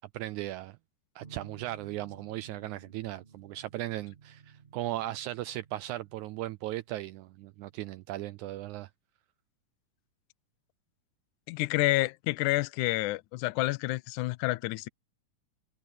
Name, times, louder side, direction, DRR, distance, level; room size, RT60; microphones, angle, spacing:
voice 1, 0.1-0.8 1.2-8.9, right 15 dB, 80° right, 1.7 m, -37 dB
sound 1, 1.2-8.9, right 5 dB, 20° right, 2.4 m, -56 dB
voice 2, 11.5-14.9, left 20 dB, 75° left, 2.0 m, -29 dB
omnidirectional pair, 3.9 m